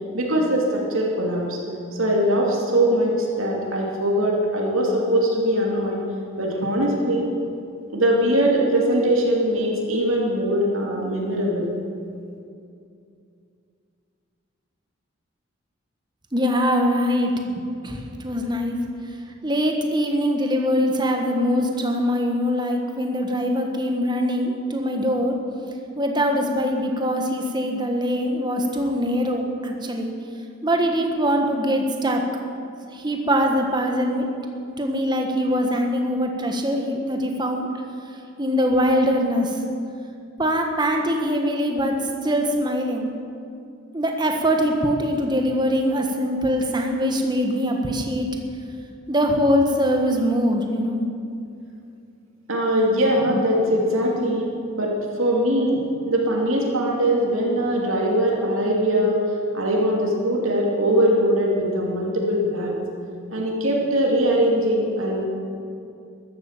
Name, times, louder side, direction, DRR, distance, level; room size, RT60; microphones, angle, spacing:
voice 1, 0.1-1.6 1.9-6.0 6.4-7.3 7.9-11.7 52.5-54.5 54.8-59.2 59.5-62.8 63.3-65.2, right 1 dB, 80° right, -2 dB, 2.6 m, -21 dB
voice 2, 16.3-17.3 17.8-18.8 19.4-25.4 26.0-30.1 30.6-32.2 32.9-34.3 34.8-37.7 38.4-39.6 40.4-43.1 43.9-48.3 49.1-51.0, equal, 20° right, 2 dB, 1.5 m, -22 dB
14.0 x 12.0 x 7.3 m, 2.5 s
head